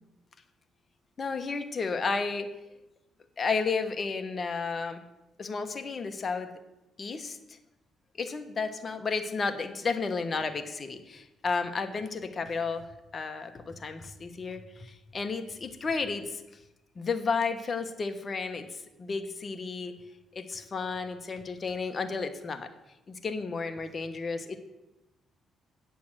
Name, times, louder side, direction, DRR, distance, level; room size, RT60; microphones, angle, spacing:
voice 1, 1.2-2.5 3.4-5.0 5.4-6.6 7.0-7.4 8.2-12.9 13.1-16.4 17.0-18.7 19.0-19.9 20.3-22.7 23.1-24.6, left 4 dB, 40° left, 8 dB, 1.2 m, -32 dB
8.7 x 7.0 x 7.9 m, 0.94 s
cardioid pair, 90°, 0 cm